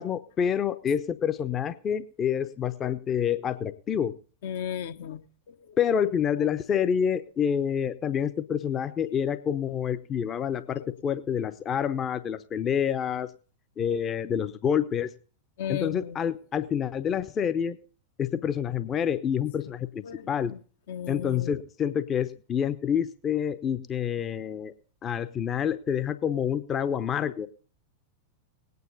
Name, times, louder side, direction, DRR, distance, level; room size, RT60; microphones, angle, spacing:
voice 1, 0.0-4.1 5.8-13.3 13.8-15.1 15.7-17.8 18.2-20.5 21.1-24.7 25.0-27.5, left 8 dB, 25° left, 0.8 m, -28 dB
voice 2, 4.4-6.0 10.8-10.9 15.6-16.2 20.0-20.6 20.9-21.6, left 8 dB, 55° left, 1.0 m, -36 dB
19.0 x 9.5 x 4.0 m
figure-of-eight pair, 90°, 0 cm